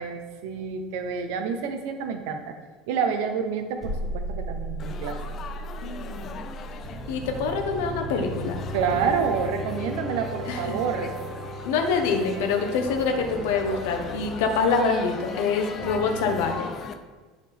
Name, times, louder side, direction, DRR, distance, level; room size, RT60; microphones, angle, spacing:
voice 1, 0.0-2.5 2.9-5.2 8.7-11.1, right 6 dB, 75° right, 6 dB, 0.8 m, -28 dB
sound 1, 3.8-6.9, right 1 dB, 10° left, 1.2 m, -34 dB
Laughter / Chatter / Crowd, 4.8-16.9, left 6 dB, 30° left, 0.4 m, -40 dB
voice 2, 5.8-6.4 7.1-8.6 10.5-10.8 11.6-16.7, left 4 dB, 85° left, 4 dB, 1.0 m, -25 dB
sound 2, 6.8-16.4, right 1 dB, 30° right, 0.9 m, -36 dB
10.5 x 4.1 x 3.5 m, 1.3 s
cardioid pair, 165°, 0 cm